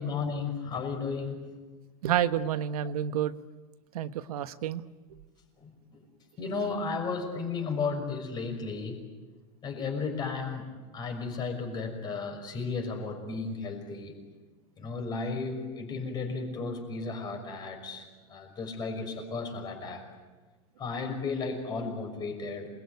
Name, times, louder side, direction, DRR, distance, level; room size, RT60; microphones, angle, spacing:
voice 1, 0.0-1.4 5.6-6.0 6.4-9.0 9.6-10.6 10.9-14.1 14.8-20.0 20.8-22.7, left 4 dB, 20° left, 4 dB, 6.0 m, -34 dB
voice 2, 2.0-3.3 3.9-4.8, right 10 dB, 80° right, 11 dB, 1.3 m, -29 dB
28.0 x 22.0 x 9.7 m, 1.3 s
supercardioid pair, 155°, 19 cm